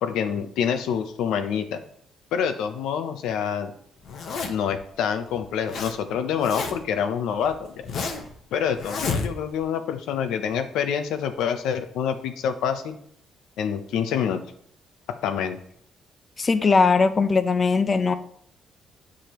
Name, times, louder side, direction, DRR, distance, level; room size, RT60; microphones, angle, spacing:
voice 1, 0.0-1.8 2.3-3.7 4.5-7.9 8.5-13.0 13.6-14.4 15.2-15.6, left 8 dB, 85° left, 8 dB, 0.7 m, -26 dB
Zipper (clothing), 4.1-4.8 5.4-6.0 6.2-7.0 7.4-8.3 8.8-9.6, left 4 dB, 65° left, 1.0 m, -30 dB
voice 2, 16.4-18.1, left 4 dB, 35° left, 11 dB, 0.6 m, -20 dB
8.4 x 4.9 x 3.0 m, 0.64 s
cardioid pair, 90°, 0 cm